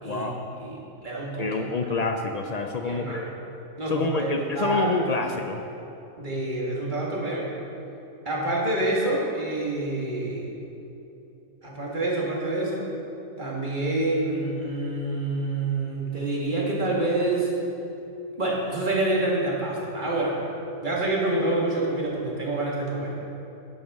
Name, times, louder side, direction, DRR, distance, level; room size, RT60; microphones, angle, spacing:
voice 1, 0.1-0.4 1.4-3.3 3.9-5.6, left 3 dB, 90° left, 4 dB, 0.3 m, -27 dB
voice 2, 0.6-1.5 2.8-3.3 3.8-4.3 4.6-4.9 6.2-7.5 8.3-10.5 11.6-12.8 13.4-17.5 18.4-20.4 20.8-23.2, right 2 dB, 35° right, -4 dB, 2.0 m, -27 dB
11.0 x 10.5 x 3.7 m, 2.9 s
omnidirectional pair, 1.4 m